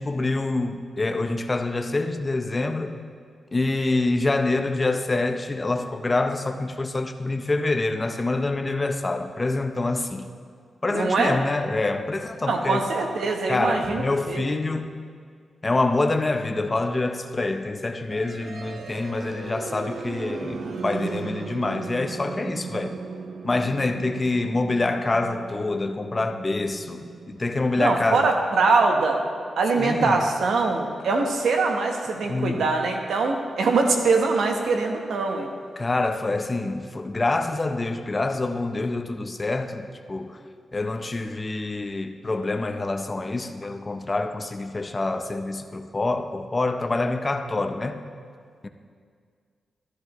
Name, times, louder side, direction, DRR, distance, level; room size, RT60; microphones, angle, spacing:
voice 1, 0.0-3.0 3.5-10.3 10.8-12.9 13.5-15.0 15.6-23.0 23.4-28.3 29.7-30.2 32.2-32.7 35.8-40.4 40.7-48.0 48.6-48.7, left 2 dB, 25° left, 7 dB, 0.6 m, -26 dB
voice 2, 10.9-11.4 12.5-14.6 27.8-29.2 29.6-35.5, right 3 dB, 85° right, 2 dB, 1.1 m, -23 dB
sound 1, 18.1-30.0, right 4 dB, 65° right, 0.7 m, -37 dB
13.0 x 13.0 x 3.1 m, 2.1 s
wide cardioid pair, 140°, 0 cm